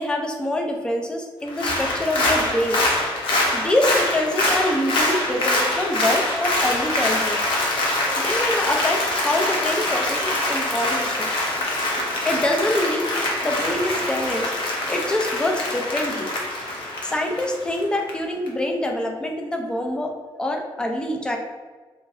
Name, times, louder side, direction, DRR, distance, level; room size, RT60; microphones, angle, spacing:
voice 1, 0.0-2.9 3.2-7.4 8.2-11.3 12.2-16.3 16.7-20.1 20.4-21.4, left 1 dB, 10° left, 2 dB, 0.4 m, -25 dB
Applause, 1.5-18.1 18.5-18.6, left 1 dB, 75° left, 0.7 m, -24 dB
3.7 x 3.0 x 2.5 m, 1.4 s
wide cardioid pair, 165°, 9 cm